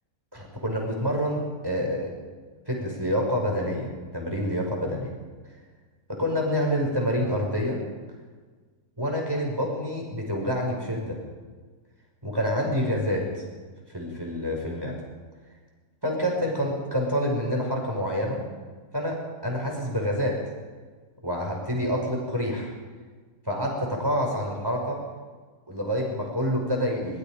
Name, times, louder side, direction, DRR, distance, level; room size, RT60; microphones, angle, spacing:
voice 1, 0.3-2.1 2.7-5.1 6.1-7.8 9.0-11.2 12.2-13.4 13.9-15.0 16.0-18.4 18.9-20.4 21.2-22.7 23.5-25.0 25.7-27.2, equal, 15° right, -1 dB, 6.1 m, -27 dB
25.0 x 22.0 x 5.3 m, 1.4 s
omnidirectional pair, 1.7 m